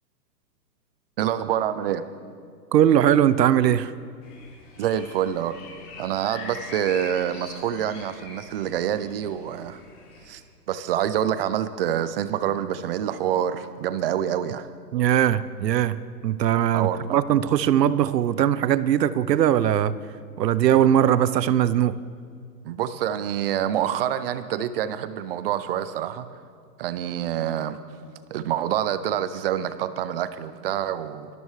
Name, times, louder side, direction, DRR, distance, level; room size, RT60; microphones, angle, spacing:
voice 1, 1.2-2.0 4.8-5.6 6.0-9.8 10.3-10.4 10.7-14.7 16.7-17.2 22.6-26.3 26.8-27.8 28.3-31.3, right 10 dB, 35° right, 13 dB, 0.6 m, -26 dB
voice 2, 2.7-3.9 14.9-19.9 20.4-21.9, right 10 dB, 75° right, 16 dB, 0.7 m, -20 dB
sound 1, 4.2-10.4, left 4 dB, 60° left, 4.2 m, -43 dB
24.0 x 12.5 x 3.2 m, 2.2 s
hypercardioid pair, 140°, 49 cm